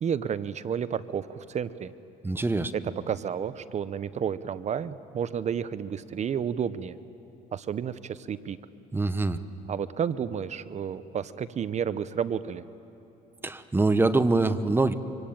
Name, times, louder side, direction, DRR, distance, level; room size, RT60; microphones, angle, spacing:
voice 1, 0.0-1.9 2.7-7.0 7.5-8.6 9.7-12.6, right 8 dB, 40° right, 15 dB, 0.8 m, -31 dB
voice 2, 2.2-2.7 8.9-9.4 13.4-14.9, right 3 dB, 15° right, 12 dB, 1.1 m, -24 dB
25.0 x 24.0 x 8.8 m, 2.9 s
cardioid pair, 110°, 17 cm